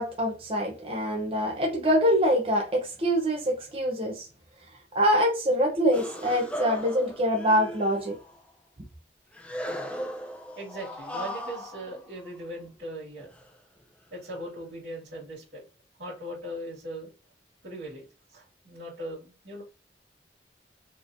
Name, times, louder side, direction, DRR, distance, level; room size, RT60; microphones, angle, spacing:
voice 1, 0.0-4.3 4.9-8.2, equal, 30° right, 0.7 m, -25 dB
sound 1, 5.9-8.4 9.3-12.7 13.2-13.5 14.3-14.6, equal, 5° left, 0.5 m, -38 dB
voice 2, 10.6-13.3 14.1-15.6 16.0-17.1 17.6-18.0 18.3-19.6, right 1 dB, 75° right, 2.1 m, -39 dB
4.1 x 3.1 x 2.5 m
head